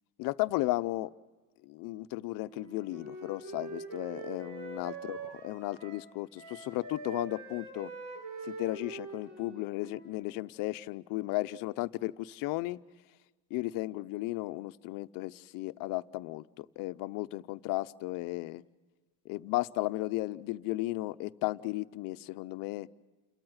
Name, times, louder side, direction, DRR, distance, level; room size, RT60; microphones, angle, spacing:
voice 1, 0.2-1.1 1.6-5.2 5.4-7.9 8.4-12.8 13.5-18.6 19.3-22.9, left 19 dB, 50° left, 12 dB, 0.7 m, -35 dB
Wind instrument woodwind instrument, 2.5-6.1 6.3-10.3, right 3 dB, 80° right, 7.2 m, -44 dB
29.5 x 13.5 x 7.9 m, 1.3 s
cardioid pair, 170°, 43 cm